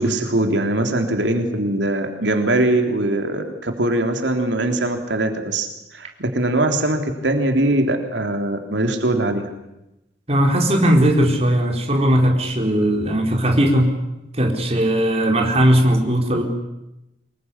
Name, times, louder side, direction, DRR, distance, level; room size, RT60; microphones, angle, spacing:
voice 1, 0.0-9.5, right 1 dB, 85° right, 5 dB, 3.5 m, -21 dB
voice 2, 10.3-13.9 14.3-16.4, equal, 35° right, 2 dB, 4.3 m, -18 dB
25.5 x 22.0 x 9.9 m, 0.91 s
head